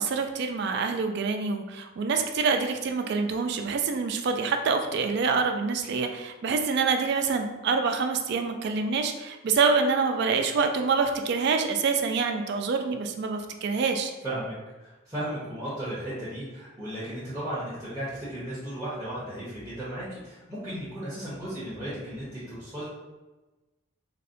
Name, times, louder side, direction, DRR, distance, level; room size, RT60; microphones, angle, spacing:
voice 1, 0.0-14.1, right 5 dB, 55° right, 6 dB, 0.3 m, -26 dB
voice 2, 14.2-22.9, right 1 dB, 15° right, -12 dB, 0.8 m, -35 dB
4.0 x 2.1 x 2.6 m, 1.1 s
head